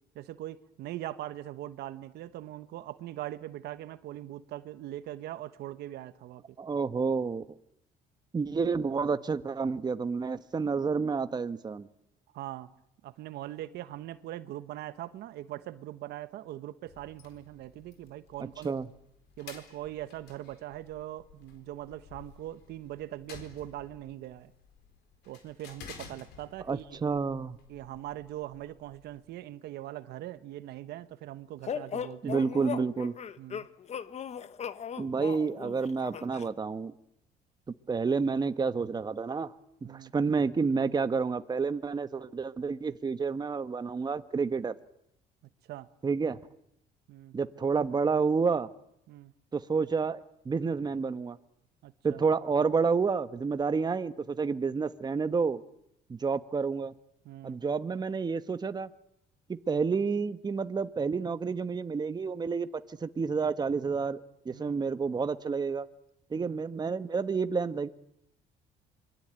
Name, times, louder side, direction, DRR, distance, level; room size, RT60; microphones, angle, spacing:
voice 1, 0.1-6.4 12.3-12.7 13.0-18.7 19.4-24.5 25.2-27.0 27.7-32.4 33.4-33.7 39.8-40.1 45.7-45.9 47.1-47.3 49.1-49.3 51.8-52.2 57.2-57.6 64.5-64.8 66.3-66.6, right 14 dB, 75° right, 1.2 m, -41 dB
voice 2, 6.6-7.4 8.3-11.9 18.4-18.9 26.7-27.6 32.2-33.1 35.0-36.9 37.9-39.5 39.9-44.7 46.0-46.4 47.3-48.7 49.5-51.4 52.0-55.6 56.1-56.9 57.4-58.9 59.5-64.2 64.4-65.9 66.3-67.9, right 5 dB, 25° right, 1.1 m, -29 dB
sound 1, 16.8-29.3, left 6 dB, 85° left, 4.5 m, -53 dB
sound 2, 31.7-36.5, left 7 dB, 40° left, 1.1 m, -38 dB
26.0 x 22.5 x 9.0 m
cardioid pair, 110°, 17 cm